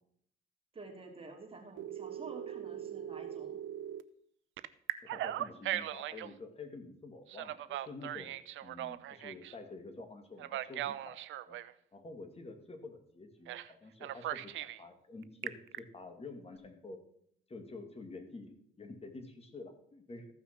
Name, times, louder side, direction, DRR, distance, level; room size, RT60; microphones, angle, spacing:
voice 1, 0.7-3.6, right 3 dB, 30° right, 1 dB, 2.9 m, -49 dB
Telephone, 1.8-4.0 4.6-6.3 7.3-9.5 10.4-11.7 13.5-13.7 14.0-14.8 15.2-15.8, right 12 dB, 75° right, 0.6 m, -39 dB
voice 2, 5.0-11.2 11.5-11.6 11.9-17.0 17.5-18.5 18.8-20.3, left 3 dB, 30° left, 6 dB, 2.2 m, -49 dB
14.5 x 6.1 x 6.0 m, 0.66 s
cardioid pair, 90°, 20 cm